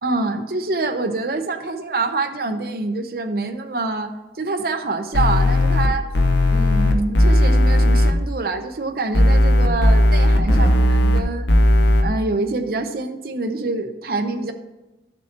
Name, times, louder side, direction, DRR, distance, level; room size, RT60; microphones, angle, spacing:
voice 1, 0.0-4.1 4.4-6.1 6.5-11.5 12.0-14.5, right 3 dB, 55° right, 6 dB, 0.8 m, -25 dB
sound 1, 5.1-5.9 6.1-8.1 9.1-11.2 11.5-12.0, left 1 dB, 80° left, 0.8 m, -15 dB
13.0 x 6.9 x 3.0 m, 1.0 s
head